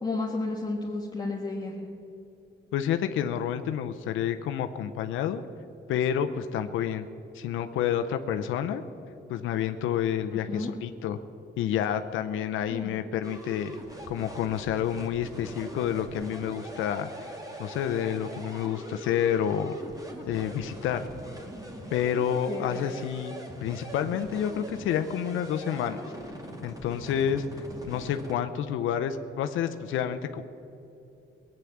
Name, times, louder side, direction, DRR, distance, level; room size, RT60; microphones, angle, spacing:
voice 1, 0.0-1.9 10.3-10.7 12.7-13.0 22.5-22.8, left 3 dB, 20° left, -4 dB, 1.8 m, -32 dB
voice 2, 2.7-5.4 5.9-7.1 7.3-8.8 9.3-11.2 11.6-13.7 14.1-17.3 17.6-19.8 20.3-21.1 21.9-26.0 26.6-27.4 27.9-30.4, left 9 dB, 85° left, 8 dB, 0.7 m, -29 dB
sound 1, 13.2-28.3, right 1 dB, 15° right, 2.3 m, -42 dB
18.5 x 9.0 x 7.2 m, 2.8 s
cardioid pair, 90°, 20 cm